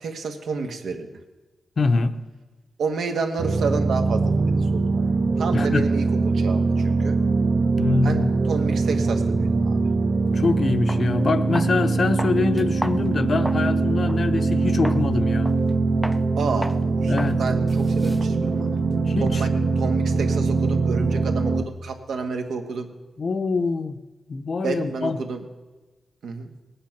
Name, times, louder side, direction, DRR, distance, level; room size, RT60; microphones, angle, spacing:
voice 1, 0.0-1.1 2.8-7.2 8.0-9.8 16.4-18.8 19.2-19.5 19.8-22.9 24.6-25.5 26.2-26.5, right 4 dB, 80° right, 5 dB, 1.4 m, -30 dB
voice 2, 1.8-2.1 5.5-5.8 7.8-8.3 10.3-15.5 17.1-17.4 19.1-19.4 23.2-24.0 24.3-25.2, left 3 dB, 40° left, 10 dB, 0.7 m, -24 dB
sound 1, 3.4-21.6, right 3 dB, 50° right, 0.7 m, -22 dB
sound 2, 10.3-10.4 10.9-11.1 11.6-11.8 12.2-13.7 14.1-14.2 14.8-15.1 15.5-15.7 16.0-16.2 16.6-16.8 17.2-17.4 17.7-19.6, equal, 5° right, 0.4 m, -35 dB
19.5 x 8.8 x 5.9 m, 1.2 s
wide cardioid pair, 150°, 0 cm